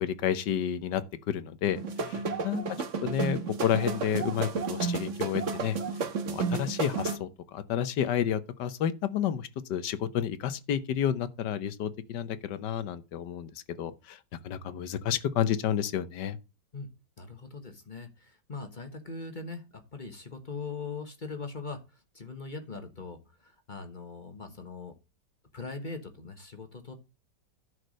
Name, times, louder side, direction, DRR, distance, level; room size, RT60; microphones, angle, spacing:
voice 1, 0.0-2.6 3.0-5.8 6.3-13.5 13.8-14.2 14.4-16.4, left 9 dB, 80° left, 1.5 m, -30 dB
sound 1, 1.7-7.2, right 4 dB, 50° right, 1.3 m, -32 dB
voice 2, 2.0-2.5 16.7-16.9 17.2-25.0 25.5-26.9, left 4 dB, 30° left, 1.2 m, -41 dB
11.0 x 4.8 x 6.3 m
omnidirectional pair, 1.9 m